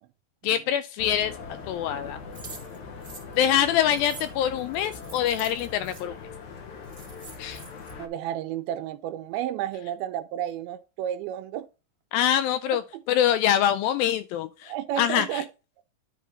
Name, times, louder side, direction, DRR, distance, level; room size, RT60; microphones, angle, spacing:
voice 1, 0.4-1.3 1.7-2.2 3.4-6.2 7.4-7.6 12.1-12.8 13.1-15.4, left 10 dB, 80° left, 2.2 m, -24 dB
sound 1, 1.0-8.1, left 4 dB, 65° left, 2.2 m, -41 dB
sound 2, 2.3-6.0 6.6-6.7 6.8-7.9, right 4 dB, 20° right, 1.5 m, -46 dB
voice 2, 8.0-11.7 14.7-15.5, right 11 dB, 85° right, 2.5 m, -31 dB
10.0 x 3.7 x 5.3 m
omnidirectional pair, 4.3 m